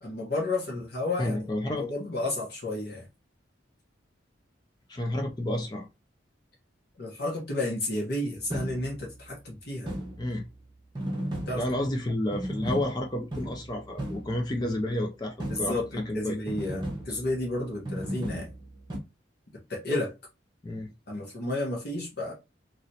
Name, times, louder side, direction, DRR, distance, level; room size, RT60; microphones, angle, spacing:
voice 1, 0.0-3.1 7.0-9.9 11.5-11.7 15.5-18.5 19.7-20.1 21.1-22.3, left 2 dB, 55° left, 1.1 m, -32 dB
voice 2, 1.2-1.9 4.9-5.9 10.2-10.5 11.5-16.4 17.1-17.2 20.6-20.9, left 1 dB, 20° left, 0.4 m, -31 dB
sound 1, 8.4-9.2 9.9-10.5 11.0-12.0 12.3-14.6 15.4-16.1 16.5-17.5 17.9-19.0, right 1 dB, 20° right, 0.9 m, -36 dB
3.0 x 2.9 x 2.7 m
head